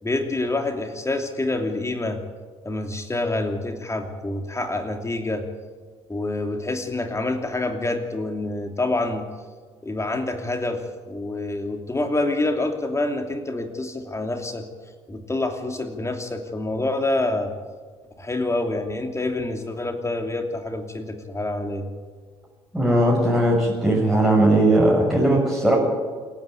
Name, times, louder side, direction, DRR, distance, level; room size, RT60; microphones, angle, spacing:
voice 1, 0.0-2.2 2.6-5.4 6.1-9.3 9.8-14.7 15.1-17.5 18.2-21.9, left 2 dB, 20° left, 5 dB, 2.8 m, -27 dB
voice 2, 22.7-25.7, right 1 dB, ahead, -4 dB, 7.0 m, -18 dB
28.0 x 10.0 x 9.3 m, 1.5 s
figure-of-eight pair, 50°, 14 cm